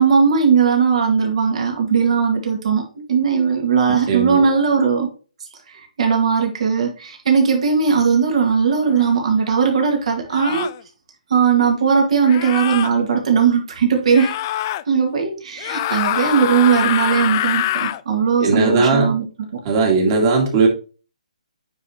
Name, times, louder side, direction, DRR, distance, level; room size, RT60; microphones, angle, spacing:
voice 1, 0.0-5.1 6.0-10.7 11.3-14.4 14.9-19.2, right 6 dB, 55° right, 2 dB, 2.2 m, -18 dB
voice 2, 3.9-4.5 18.4-19.1 19.6-20.7, right 4 dB, 30° right, 1 dB, 2.2 m, -18 dB
sound 1, 8.9-9.1 10.3-10.8 12.2-12.9 14.1-14.8 15.6-18.0, left 14 dB, 30° left, 0.3 m, -24 dB
9.2 x 4.1 x 3.0 m, 0.34 s
hypercardioid pair, 155°, 4 cm